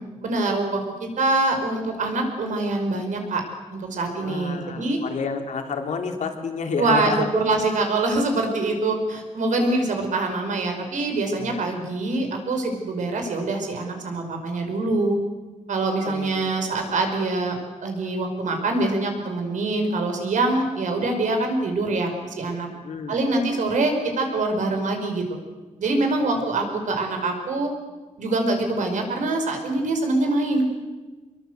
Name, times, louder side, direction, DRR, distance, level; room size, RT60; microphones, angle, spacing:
voice 1, 0.2-3.4 3.7-5.0 6.8-15.2 15.7-17.6 17.8-22.7 23.1-25.4 25.8-27.7 28.2-30.6, right 2 dB, 80° right, 4 dB, 5.3 m, -24 dB
voice 2, 4.2-7.3 11.4-11.8 16.0-16.7 22.8-23.2 26.4-26.6, left 5 dB, 70° left, 3 dB, 3.3 m, -30 dB
25.0 x 22.5 x 8.1 m, 1.3 s
wide cardioid pair, 165°, 13 cm